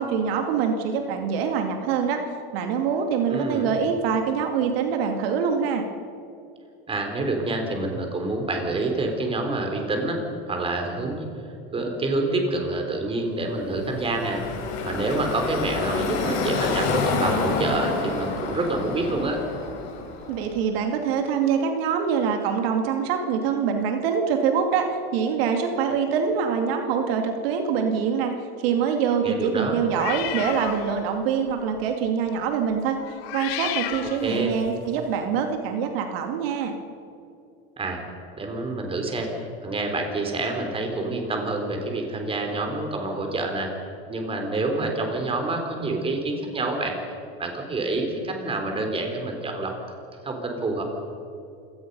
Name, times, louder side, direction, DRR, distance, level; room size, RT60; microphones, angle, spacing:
voice 1, 0.0-2.2 2.5-5.8 20.3-33.0 33.3-36.7, right 6 dB, 70° right, 4 dB, 2.5 m, -24 dB
voice 2, 3.3-3.7 6.9-10.2 10.5-11.3 11.7-14.4 14.8-19.4 29.2-29.8 34.2-34.5 37.8-38.0 38.4-39.3 39.6-43.7 44.1-47.0 47.4-49.7 50.2-50.8, right 2 dB, 15° right, 3 dB, 3.8 m, -27 dB
Car passing by / Traffic noise roadway noise, 13.6-20.6, left 4 dB, 50° left, 5.7 m, -28 dB
sound 1, 29.9-31.1 31.5-31.8 33.0-34.8, left 13 dB, 70° left, 1.7 m, -33 dB
27.5 x 18.0 x 5.5 m, 2.6 s
supercardioid pair, 140°, 31 cm